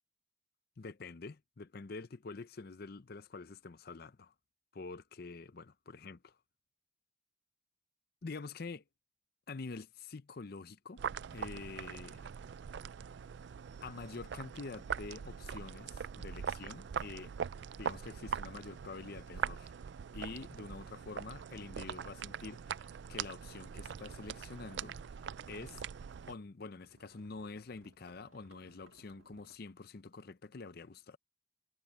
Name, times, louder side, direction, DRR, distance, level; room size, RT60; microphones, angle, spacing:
voice 1, 0.8-4.3 4.7-6.4 8.2-8.8 9.5-11.0 11.3-12.3 13.8-17.3 17.8-19.7 20.1-25.0 25.5-25.8 26.3-31.2, left 4 dB, 50° left, 0.6 m, -47 dB
sound 1, 11.0-26.3, right 7 dB, 60° right, 0.3 m, -42 dB
sound 2, 23.9-26.3 26.6-29.6, right 2 dB, 85° right, 1.8 m, -63 dB
head